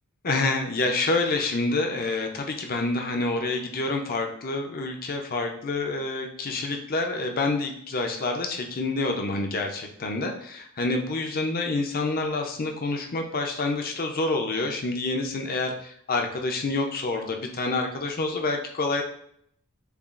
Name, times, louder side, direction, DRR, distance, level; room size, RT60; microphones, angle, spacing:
voice 1, 0.2-19.0, left 3 dB, 40° left, 3 dB, 0.6 m, -27 dB
6.8 x 2.4 x 2.4 m, 0.68 s
head